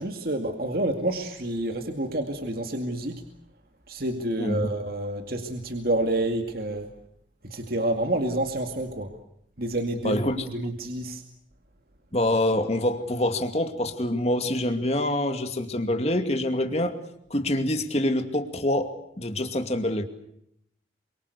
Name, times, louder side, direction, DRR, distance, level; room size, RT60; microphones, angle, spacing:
voice 1, 0.0-3.2 3.9-6.9 7.5-9.1 9.6-11.2, right 1 dB, 50° right, 5 dB, 2.2 m, -28 dB
voice 2, 4.4-4.7 10.0-10.5 12.1-17.0 17.3-20.0, left 1 dB, 35° left, 7 dB, 2.5 m, -26 dB
27.5 x 24.5 x 6.9 m, 0.72 s
head